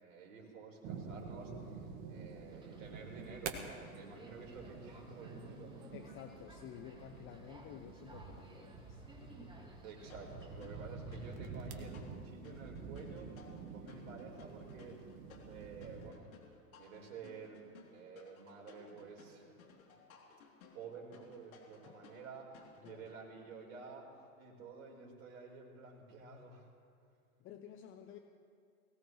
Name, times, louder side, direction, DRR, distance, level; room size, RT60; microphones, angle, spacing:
voice 1, 0.0-5.9 9.8-15.0 15.4-16.3 16.8-17.6 17.9-19.5 19.9-20.0 20.7-24.1 24.4-26.7, right 4 dB, 55° right, -1 dB, 4.6 m, -51 dB
sound 1, 0.8-16.1, right 5 dB, 40° right, 1.9 m, -48 dB
Subway metro underground, 2.4-11.3, right 1 dB, 10° right, 2.1 m, -58 dB
voice 2, 5.9-9.0 10.6-10.7 21.8-22.0 22.8-23.1 27.4-28.2, left 9 dB, 25° left, 6 dB, 0.9 m, -52 dB
sound 2, 10.1-23.2, left 5 dB, 65° left, 3.3 m, -60 dB
22.5 x 17.0 x 3.2 m, 2.3 s
hypercardioid pair, 105°, 46 cm